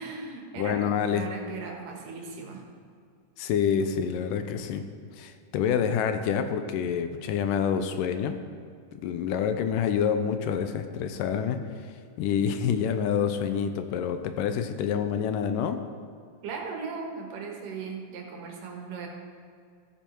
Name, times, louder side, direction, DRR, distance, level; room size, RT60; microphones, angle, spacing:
voice 1, 0.0-2.6 16.4-19.1, right 4 dB, 75° right, 1 dB, 3.0 m, -38 dB
voice 2, 0.6-1.3 3.4-4.8 5.1-8.4 9.0-11.6 12.2-15.8, left 7 dB, 80° left, 9 dB, 2.2 m, -27 dB
14.5 x 9.2 x 4.5 m, 2.3 s
omnidirectional pair, 3.9 m